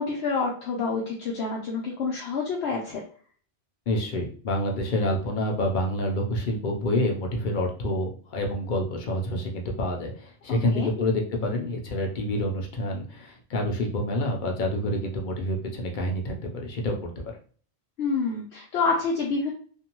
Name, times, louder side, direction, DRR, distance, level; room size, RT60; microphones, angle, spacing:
voice 1, 0.0-3.0 10.5-10.9 18.0-19.5, left 4 dB, 80° left, -3 dB, 0.9 m, -28 dB
voice 2, 3.9-17.1, left 1 dB, 55° left, 1 dB, 0.7 m, -27 dB
2.6 x 2.2 x 2.9 m, 0.43 s
omnidirectional pair, 1.1 m